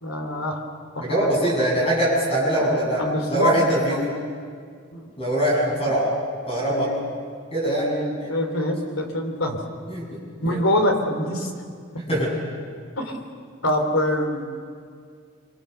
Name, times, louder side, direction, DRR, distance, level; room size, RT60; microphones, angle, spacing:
voice 1, 0.0-0.6 0.9-1.3 1.8-1.9 2.5-4.0 4.9-5.1 6.7-7.1 7.7-9.6 10.4-11.5 13.0-13.2 13.6-14.5, left 1 dB, 90° left, 3 dB, 3.5 m, -25 dB
voice 2, 1.0-3.0 3.3-4.1 5.2-6.1 6.5-6.9 7.5-7.9 9.9-10.6 12.1-12.3, right 1 dB, 30° left, -4 dB, 7.7 m, -23 dB
27.0 x 24.5 x 6.9 m, 2.1 s
head